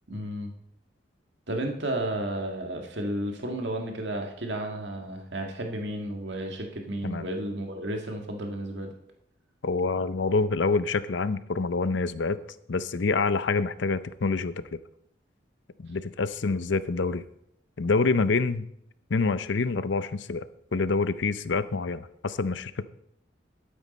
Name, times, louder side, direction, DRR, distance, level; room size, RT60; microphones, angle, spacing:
voice 1, 0.1-0.5 1.5-8.9, right 1 dB, 70° right, 3 dB, 1.8 m, -32 dB
voice 2, 9.6-12.4 12.7-14.6 15.8-17.2 17.8-18.7 19.1-20.5 20.7-22.8, left 4 dB, 75° left, 14 dB, 0.6 m, -26 dB
12.0 x 9.2 x 4.3 m, 0.73 s
head